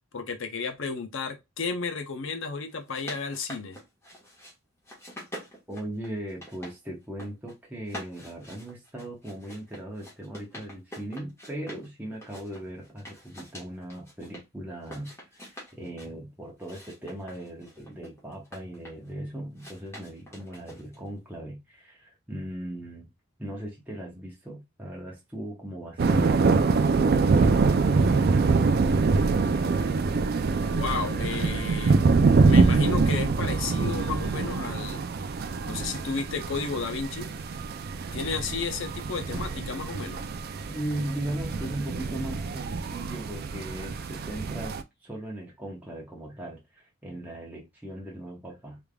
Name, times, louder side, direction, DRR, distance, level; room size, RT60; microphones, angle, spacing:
voice 1, 0.1-3.8 30.6-32.1 32.4-35.0 35.7-37.3 38.1-40.2, left 4 dB, 65° left, 0.8 m, -33 dB
sound 1, 2.7-4.5 4.8-6.7 7.0-7.5 7.8-11.9 12.2-14.4 14.8-16.1 16.6-19.1 19.6-21.1, equal, 15° left, 1.3 m, -45 dB
voice 2, 5.7-23.1 23.4-29.9 40.7-44.7 45.0-48.8, right 1 dB, 10° right, 0.9 m, -38 dB
sound 2, 26.0-44.8, right 4 dB, 45° right, 0.3 m, -24 dB
3.5 x 3.4 x 2.3 m
head